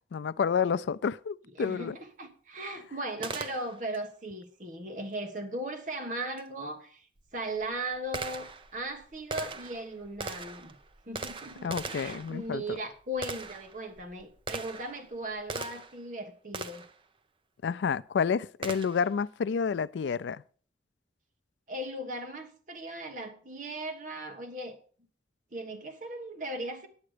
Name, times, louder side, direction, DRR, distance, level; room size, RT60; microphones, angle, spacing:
voice 1, 0.1-2.0 11.6-12.8 17.6-20.4, left 6 dB, 85° left, 0.4 m, -29 dB
voice 2, 1.6-7.1 7.3-10.8 11.1-16.8 21.7-24.8 25.5-26.9, right 1 dB, 45° right, 1.3 m, -38 dB
Gunshot gunfire, 3.2-4.0 6.4-6.5 7.2-16.1 16.5-17.0 18.6-19.2, right 3 dB, 30° right, 0.6 m, -41 dB
9.6 x 7.8 x 4.9 m
head